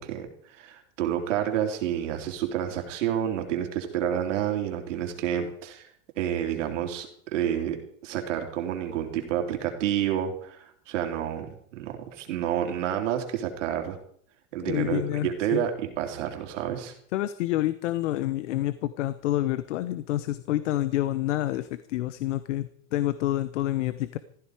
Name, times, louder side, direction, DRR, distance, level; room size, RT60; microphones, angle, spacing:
voice 1, 0.0-5.9 6.2-14.0 14.5-16.9, right 10 dB, 85° right, 4 dB, 3.6 m, -29 dB
voice 2, 14.6-15.6 17.1-24.2, left 14 dB, 80° left, 14 dB, 1.0 m, -28 dB
16.0 x 15.0 x 5.0 m, 0.62 s
supercardioid pair, 165°, 36 cm